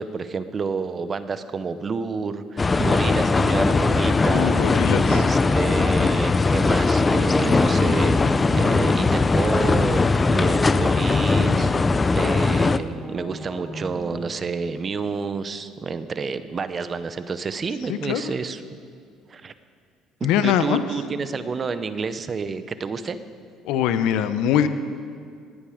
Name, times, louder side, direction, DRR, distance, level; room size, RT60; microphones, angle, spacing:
voice 1, 0.0-4.6 5.1-10.0 10.3-11.7 12.1-18.8 19.3-19.5 20.2-23.2, right 5 dB, 35° right, 12 dB, 0.7 m, -29 dB
sound 1, 2.6-12.8, left 3 dB, 25° left, 0.5 m, -20 dB
voice 2, 4.2-5.2 17.9-18.2 20.2-20.8 23.6-24.7, left 10 dB, 80° left, 11 dB, 0.7 m, -22 dB
sound 2, 8.4-14.4, right 1 dB, 10° right, 1.4 m, -37 dB
18.5 x 8.8 x 5.0 m, 2.1 s
supercardioid pair, 90°, 0 cm